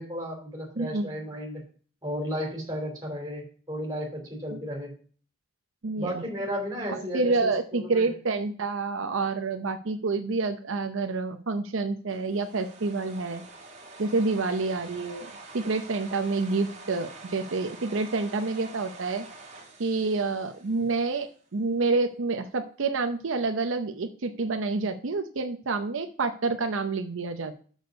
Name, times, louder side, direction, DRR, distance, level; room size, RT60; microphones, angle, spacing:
voice 1, 0.0-1.6 2.0-4.9 5.9-8.1, equal, 20° right, 0 dB, 3.0 m, -34 dB
voice 2, 0.8-1.1 4.5-4.6 5.8-6.2 6.9-13.4 14.0-19.2 19.8-27.6, right 3 dB, 70° right, 7 dB, 0.6 m, -28 dB
sound 1, 12.1-21.3, right 2 dB, 35° right, 2.1 m, -47 dB
6.7 x 6.4 x 5.2 m, 0.43 s
head